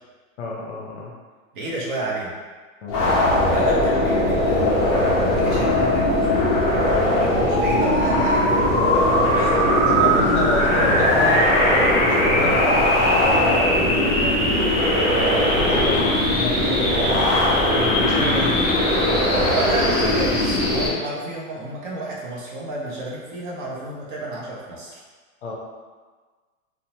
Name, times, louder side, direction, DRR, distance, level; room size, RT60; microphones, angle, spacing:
voice 1, 0.4-1.1 2.8-3.0 6.8-7.5 8.8-9.0 9.8-14.4 15.1-18.7 25.4-25.5, left 3 dB, 55° left, -3 dB, 0.7 m, -30 dB
voice 2, 1.5-2.3 3.5-6.3 7.2-10.4 15.4-15.6 19.5-25.0, right 2 dB, 40° right, -4 dB, 0.5 m, -31 dB
sound 1, 2.9-20.9, left 1 dB, 25° left, 0.4 m, -19 dB
2.8 x 2.0 x 2.8 m, 1.4 s
supercardioid pair, 155°, 42 cm